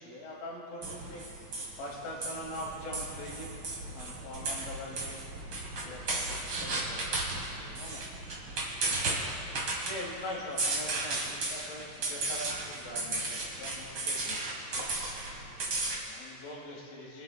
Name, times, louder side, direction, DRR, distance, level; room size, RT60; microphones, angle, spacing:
voice 1, 0.0-3.6 3.9-5.2 5.8-8.0 8.8-9.2 9.8-15.4 15.6-17.2, left 1 dB, 90° left, -3 dB, 4.9 m, -43 dB
sound 1, 0.8-16.0, right 2 dB, 55° right, 1.4 m, -35 dB
25.0 x 10.5 x 2.4 m, 2.6 s
omnidirectional pair, 5.3 m